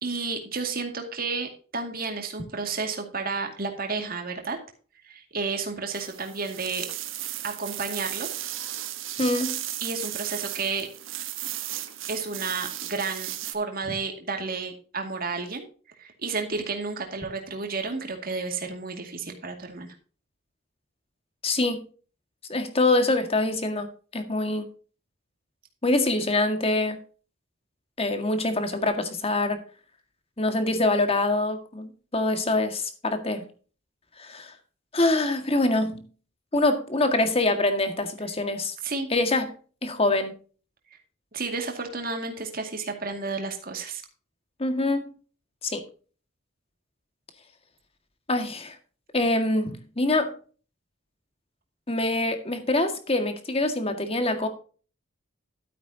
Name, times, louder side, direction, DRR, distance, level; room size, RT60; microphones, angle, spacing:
voice 1, 0.0-4.6 5.0-6.9 7.4-8.3 9.8-10.9 12.1-15.7 16.0-19.9 38.8-39.1 41.3-44.0, right 4 dB, 50° right, 4 dB, 2.2 m, -31 dB
sound 1, 5.9-13.5, right 13 dB, 90° right, 1.2 m, -35 dB
voice 2, 9.2-9.6 21.4-21.8 22.5-23.9 24.1-24.7 25.8-27.0 28.0-29.6 30.4-33.4 34.2-34.5 34.9-36.0 36.5-38.7 39.1-39.5 39.8-40.3 44.6-45.1 45.6-45.8 48.3-48.7 49.1-50.3 51.9-54.5, left 2 dB, 30° left, 7 dB, 1.9 m, -25 dB
12.5 x 9.1 x 2.8 m, 0.38 s
head